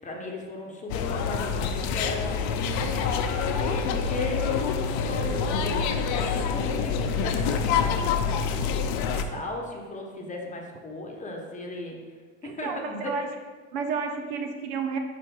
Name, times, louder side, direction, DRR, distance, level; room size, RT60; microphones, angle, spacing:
voice 1, 0.0-2.6 2.9-4.8 5.0-8.1 8.9-12.0 12.4-13.1, left 1 dB, 20° left, 1 dB, 1.0 m, -37 dB
sound 1, 0.9-9.2, left 6 dB, 55° left, 0.6 m, -26 dB
voice 2, 12.4-13.3 13.7-15.0, right 5 dB, 70° right, 5 dB, 0.8 m, -31 dB
5.5 x 3.4 x 5.5 m, 1.5 s
supercardioid pair, 100°, 34 cm